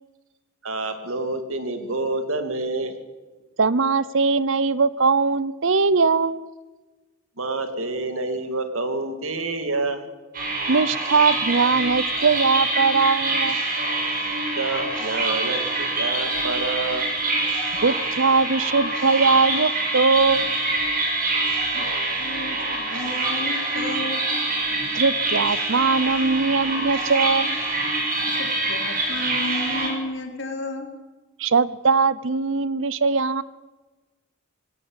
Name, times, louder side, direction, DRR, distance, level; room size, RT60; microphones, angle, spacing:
voice 1, 0.6-3.0 7.4-10.1 14.6-17.1, right 3 dB, 85° right, 8 dB, 2.6 m, -28 dB
voice 2, 3.6-6.5 10.7-13.6 17.8-20.5 24.9-27.6 31.4-33.4, right 4 dB, 70° right, 18 dB, 0.7 m, -20 dB
sound 1, 10.3-29.9, right 2 dB, 45° right, 5.7 m, -25 dB
voice 3, 22.2-24.3 28.3-30.9, left 1 dB, 60° left, 4 dB, 3.4 m, -33 dB
19.5 x 16.5 x 8.9 m, 1.2 s
head